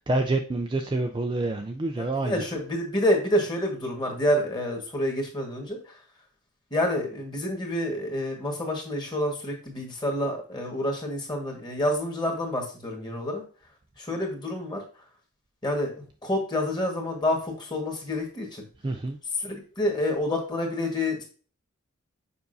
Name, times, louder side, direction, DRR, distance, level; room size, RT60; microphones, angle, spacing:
voice 1, 0.0-2.4 18.8-19.2, right 2 dB, 20° right, 4 dB, 0.3 m, -27 dB
voice 2, 2.0-5.8 6.7-13.4 14.0-14.8 15.6-18.6 19.4-21.2, left 1 dB, 20° left, 1 dB, 1.5 m, -28 dB
7.0 x 5.2 x 2.6 m, 0.38 s
head